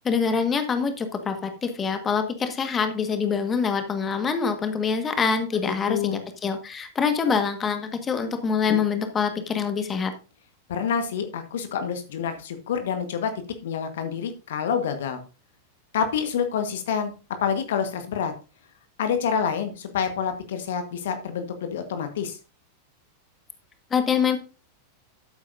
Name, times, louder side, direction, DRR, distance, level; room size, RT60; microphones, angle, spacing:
voice 1, 0.0-10.1 23.9-24.4, left 6 dB, 20° left, 8 dB, 1.6 m, -25 dB
voice 2, 5.9-6.2 10.7-13.3 13.6-15.2 15.9-17.1 17.4-18.3 19.0-22.4, left 7 dB, 60° left, 8 dB, 1.4 m, -27 dB
12.5 x 8.8 x 2.7 m, 0.32 s
figure-of-eight pair, 90°, 0 cm